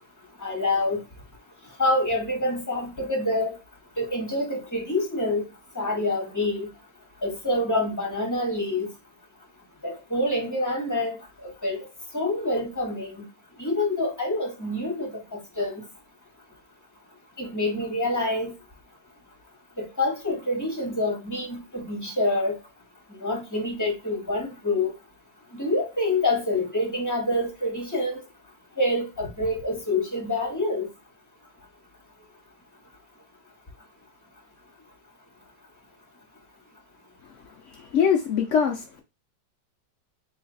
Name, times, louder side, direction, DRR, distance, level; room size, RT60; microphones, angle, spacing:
voice 1, 0.4-1.0 1.8-3.5 4.0-5.4 5.7-6.7 7.2-8.9 9.8-11.1 11.4-11.8 12.1-13.2 13.6-15.8 17.4-18.5 19.8-22.6 23.2-24.9 25.5-28.2 28.8-30.9, left 2 dB, 10° left, 1.4 m, -26 dB
voice 2, 37.7-39.0, left 7 dB, 80° left, 0.6 m, -23 dB
3.2 x 3.2 x 3.9 m
omnidirectional pair, 1.9 m